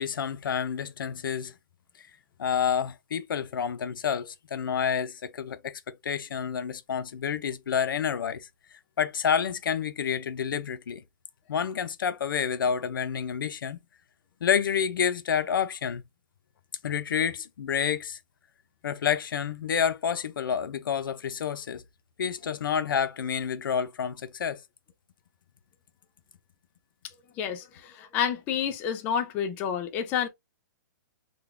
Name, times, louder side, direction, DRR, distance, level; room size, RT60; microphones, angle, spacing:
voice 1, 0.0-1.5 2.4-8.5 9.0-11.0 11.5-13.8 14.4-16.0 16.8-18.2 18.8-21.8 22.2-24.6, left 7 dB, 85° left, 0.7 m, -29 dB
voice 2, 27.4-30.3, left 8 dB, 15° left, 0.3 m, -29 dB
3.8 x 2.3 x 3.3 m
hypercardioid pair, 170°, 11 cm